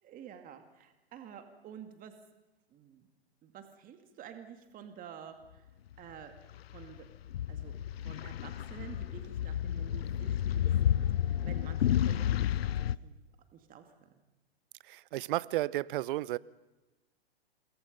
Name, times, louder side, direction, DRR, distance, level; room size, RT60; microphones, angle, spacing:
voice 1, 0.0-2.1 2.7-3.1 3.4-5.7 6.0-6.3 6.7-7.1 7.5-7.8 8.0-13.2 13.5-14.2, right 8 dB, 25° right, 2.2 m, -50 dB
sound 1, 6.5-13.0, left 11 dB, 75° left, 0.7 m, -31 dB
voice 2, 14.9-16.4, right 16 dB, 55° right, 0.8 m, -33 dB
27.5 x 22.5 x 5.3 m
hypercardioid pair, 120°, 31 cm